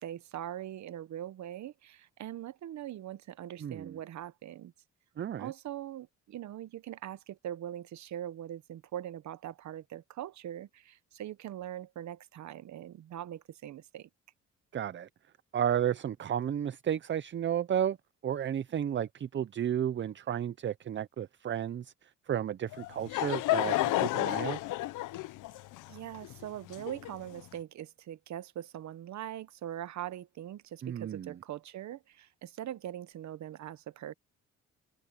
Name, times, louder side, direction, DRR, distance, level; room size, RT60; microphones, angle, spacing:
voice 1, 0.0-4.7 5.4-14.1 25.9-34.1, right 11 dB, 65° right, 1.0 m, -42 dB
voice 2, 3.6-4.0 5.2-5.5 14.7-15.1 15.5-18.0 18.2-24.6 30.8-31.3, right 9 dB, 40° right, 0.6 m, -33 dB
Laughter / Crowd, 22.7-27.4, left 16 dB, 90° left, 0.8 m, -31 dB
cardioid pair, 90°, 30 cm